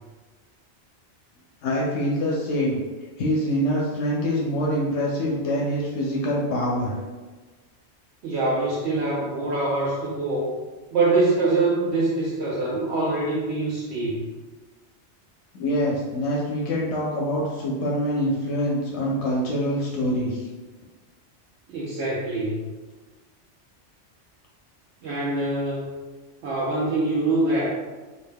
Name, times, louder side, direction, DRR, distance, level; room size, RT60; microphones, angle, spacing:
voice 1, 1.6-2.8 3.2-7.0 15.5-20.4, equal, 80° left, -3 dB, 0.9 m, -25 dB
voice 2, 8.2-10.5 10.9-14.2 21.7-22.6 25.0-25.9 26.4-27.7, right 2 dB, 75° right, -6 dB, 0.9 m, -24 dB
2.7 x 2.1 x 3.4 m, 1.3 s
omnidirectional pair, 1.2 m